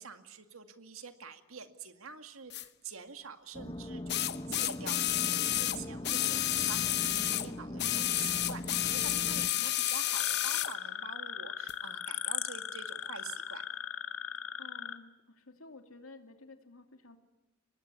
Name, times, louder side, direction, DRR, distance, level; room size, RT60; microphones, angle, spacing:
voice 1, 0.0-13.6, right 5 dB, 85° right, 8 dB, 2.1 m, -47 dB
sound 1, 2.5-2.6 4.1-7.5 7.8-10.7 11.7-11.8, left 14 dB, 55° left, 0.8 m, -31 dB
sound 2, 3.5-9.5, left 1 dB, 20° left, 0.7 m, -41 dB
voice 2, 9.4-9.7 14.6-17.2, left 2 dB, 85° left, 6 dB, 2.7 m, -53 dB
sound 3, 10.1-15.0, left 9 dB, 70° left, 1.8 m, -38 dB
24.0 x 20.0 x 8.4 m, 1.0 s
head